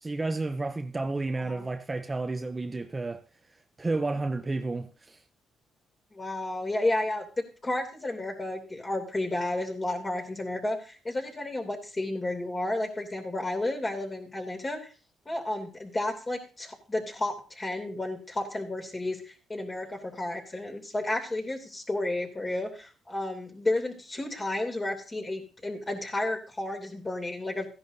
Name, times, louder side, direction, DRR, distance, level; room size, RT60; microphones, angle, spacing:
voice 1, 0.0-3.2 3.8-5.2, right 3 dB, 25° right, 0.6 m, -31 dB
voice 2, 6.1-14.8 15.2-27.7, left 2 dB, 25° left, 2.8 m, -32 dB
14.5 x 10.5 x 2.7 m
cardioid pair, 90°, 0 cm